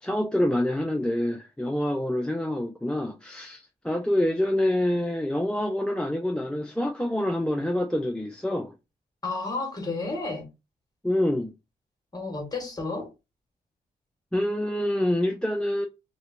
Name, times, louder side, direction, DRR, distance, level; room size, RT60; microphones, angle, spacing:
voice 1, 0.0-8.7 11.0-11.5 14.3-15.9, left 1 dB, 5° left, 0.3 m, -26 dB
voice 2, 9.2-10.5 12.1-13.1, left 3 dB, 25° left, 1.0 m, -31 dB
2.9 x 2.0 x 2.5 m
cardioid pair, 80°, 17 cm